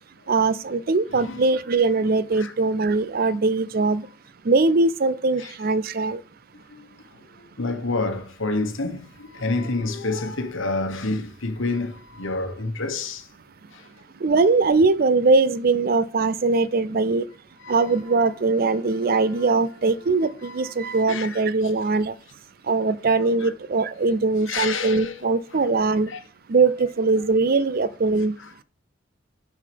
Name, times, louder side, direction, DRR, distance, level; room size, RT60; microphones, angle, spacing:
voice 1, 0.3-4.1 4.5-6.2 14.2-17.2 17.7-22.1 22.7-26.1 26.5-28.3, right 3 dB, 45° right, 0.4 m, -21 dB
voice 2, 7.6-13.3 13.7-13.9 17.6-17.8 20.4-20.6 21.1-21.4 23.4-23.5 24.5-25.1 25.5-25.7 26.1-26.2 28.4-28.5, left 3 dB, 65° left, 1.2 m, -28 dB
sound 1, 17.8-22.1, right 2 dB, 20° left, 2.5 m, -50 dB
6.5 x 5.7 x 5.1 m
head